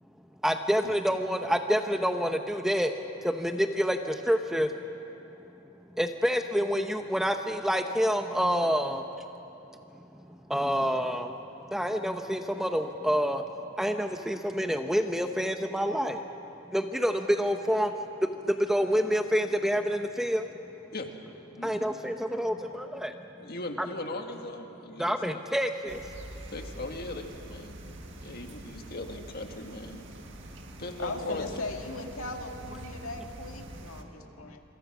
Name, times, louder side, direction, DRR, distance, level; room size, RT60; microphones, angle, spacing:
voice 1, 0.4-2.9 3.2-4.7 6.0-9.0 10.5-11.3 11.7-13.4 13.8-16.2 16.7-17.9 18.5-20.5 21.6-23.1 23.8-23.9 25.0-26.0, equal, ahead, 6 dB, 0.7 m, -27 dB
voice 2, 21.5-21.9 23.4-25.4 26.5-27.7 28.2-30.0 30.8-31.6, left 2 dB, 45° left, 4 dB, 1.9 m, -39 dB
sound 1, 25.9-34.0, right 1 dB, 60° right, 1.8 m, -45 dB
voice 3, 31.0-34.6, left 2 dB, 75° left, 3 dB, 2.1 m, -38 dB
27.5 x 25.0 x 6.1 m, 2.9 s
head